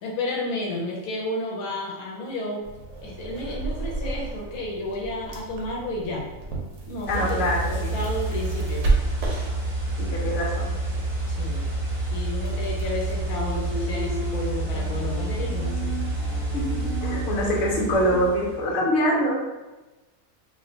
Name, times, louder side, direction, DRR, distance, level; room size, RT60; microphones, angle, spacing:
voice 1, 0.0-2.7 3.0-6.2 6.9-8.8 11.3-11.7 12.1-15.9, left 2 dB, 85° left, -2 dB, 1.1 m, -32 dB
sound 1, 2.6-18.1, right 3 dB, 65° right, 0.9 m, -34 dB
voice 2, 7.1-8.0 10.0-10.7 16.5-19.4, equal, 60° left, -3 dB, 1.0 m, -24 dB
sound 2, 7.1-18.7, right 2 dB, 40° right, 0.5 m, -28 dB
Bowed string instrument, 13.3-18.3, right 1 dB, 20° left, 1.2 m, -37 dB
3.1 x 2.7 x 2.7 m, 1.1 s
omnidirectional pair, 1.5 m